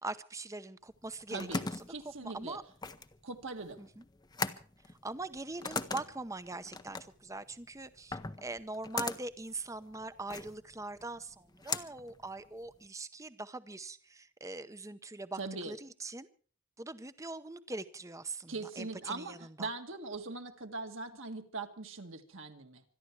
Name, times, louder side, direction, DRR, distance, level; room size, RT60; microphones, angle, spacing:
voice 1, 0.0-1.7 2.2-2.6 3.8-4.0 5.0-16.3 16.8-19.7, right 2 dB, 15° right, 0.8 m, -42 dB
sound 1, 0.9-12.9, left 4 dB, 20° left, 0.7 m, -41 dB
voice 2, 1.3-1.6 1.9-2.6 3.2-3.8 15.4-15.7 18.5-22.8, right 3 dB, 60° right, 1.9 m, -41 dB
25.5 x 11.0 x 4.7 m
head